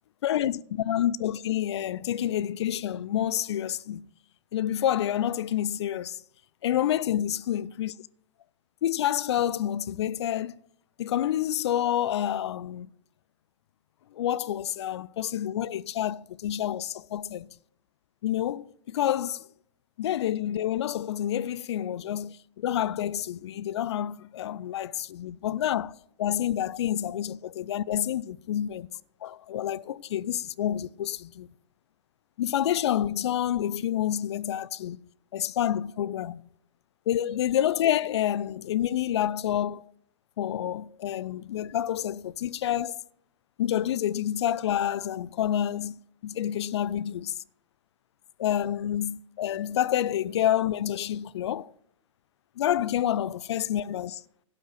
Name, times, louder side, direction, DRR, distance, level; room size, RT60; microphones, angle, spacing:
voice 1, 0.2-4.0 4.5-6.2 6.6-7.9 8.8-10.6 11.0-12.9 14.1-17.5 18.2-19.5 20.0-28.9 29.2-31.5 32.4-35.0 35.3-36.4 37.1-39.8 40.4-43.0 43.6-47.4 48.4-51.7 52.6-54.2, left 11 dB, 55° left, 0.4 m, -28 dB
12.0 x 5.5 x 7.8 m
figure-of-eight pair, 110°, 17 cm